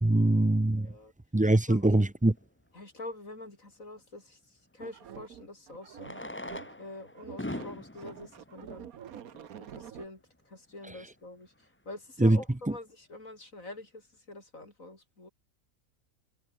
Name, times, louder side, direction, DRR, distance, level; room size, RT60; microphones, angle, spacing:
voice 1, 0.0-0.9 1.3-2.3 12.2-12.4, right 1 dB, 10° right, 0.3 m, -23 dB
voice 2, 0.7-1.1 1.5-1.9 2.7-6.2 6.8-8.9 9.6-15.3, left 2 dB, 65° left, 5.9 m, -46 dB
Fireworks, 2.4-2.5 4.7-4.8 5.9-9.6 10.4-10.5 10.7-10.8 11.0-11.1 11.6-11.9, left 1 dB, 10° left, 1.2 m, -42 dB
sound 1, 4.8-6.9 7.1-10.1, right 9 dB, 90° right, 1.5 m, -47 dB
omnidirectional pair, 1.5 m